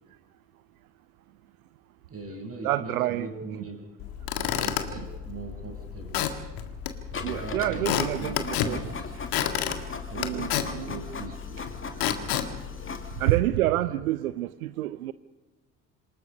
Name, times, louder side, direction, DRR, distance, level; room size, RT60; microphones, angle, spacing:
voice 1, 2.1-3.9 4.4-6.2 7.1-9.8 10.1-11.6 13.8-14.0, right 3 dB, 30° right, 5.9 m, -41 dB
voice 2, 2.6-3.3 5.0-5.1 7.2-8.9 10.2-10.9 13.2-15.1, right 15 dB, 75° right, 0.6 m, -28 dB
Squeak / Wood, 4.0-13.6, left 10 dB, 55° left, 1.9 m, -32 dB
Printer, 7.1-13.4, left 4 dB, 30° left, 2.5 m, -39 dB
27.0 x 19.0 x 5.5 m
figure-of-eight pair, 55°, 43 cm